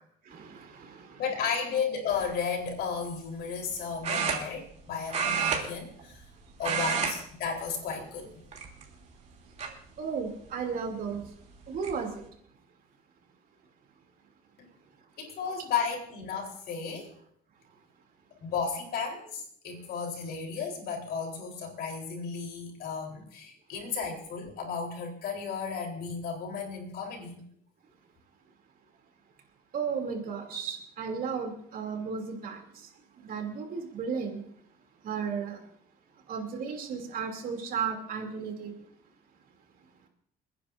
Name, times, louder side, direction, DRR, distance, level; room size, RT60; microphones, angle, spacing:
voice 1, 0.2-1.2 10.0-11.2 11.7-12.2 29.7-32.9 33.2-34.4 35.0-35.6 36.3-38.7, right 6 dB, 55° right, 3 dB, 2.9 m, -34 dB
voice 2, 1.2-6.2 6.6-8.4 14.6-14.7 15.2-17.1 18.4-27.4, left 6 dB, 70° left, 1 dB, 3.9 m, -34 dB
sound 1, 2.1-2.4 4.0-4.8 5.1-6.3 6.6-7.1 7.4-7.7 8.5-9.0 9.6-9.7 11.1-11.2 11.5-11.9, right 6 dB, 40° right, 3.0 m, -30 dB
29.0 x 9.9 x 2.6 m, 0.65 s
cardioid pair, 110°, 17 cm